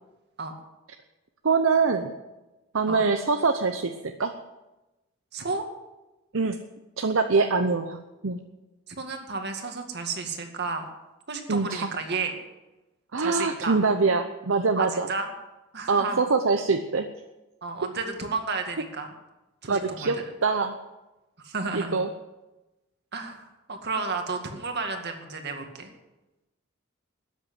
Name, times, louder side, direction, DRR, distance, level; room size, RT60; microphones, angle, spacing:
voice 1, 1.4-2.1 2.7-3.9 4.2-4.3 6.3-6.6 7.0-8.0 8.2-8.4 11.5-11.9 13.1-15.1 15.9-17.1 19.7-20.8 21.7-22.1, right 4 dB, 70° right, 6 dB, 0.8 m, -24 dB
voice 2, 5.3-5.6 8.9-10.9 11.3-12.4 13.2-13.8 14.8-15.3 15.7-16.2 17.6-19.1 19.6-20.1 21.4-22.0 23.1-25.9, right 4 dB, 55° right, 4 dB, 2.1 m, -32 dB
13.0 x 9.4 x 8.0 m, 1.0 s
head